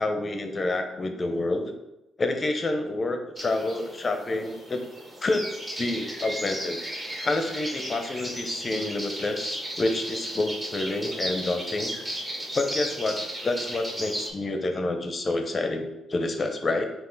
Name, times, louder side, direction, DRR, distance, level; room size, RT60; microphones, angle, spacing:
voice 1, 0.0-1.7 2.2-4.9 5.2-5.5 5.8-6.8 7.2-11.9 12.5-16.9, left 2 dB, 35° left, 5 dB, 0.6 m, -28 dB
sound 1, 3.4-14.3, equal, 20° right, 1.3 m, -35 dB
5.3 x 2.5 x 3.9 m, 0.92 s
cardioid pair, 90°, 0 cm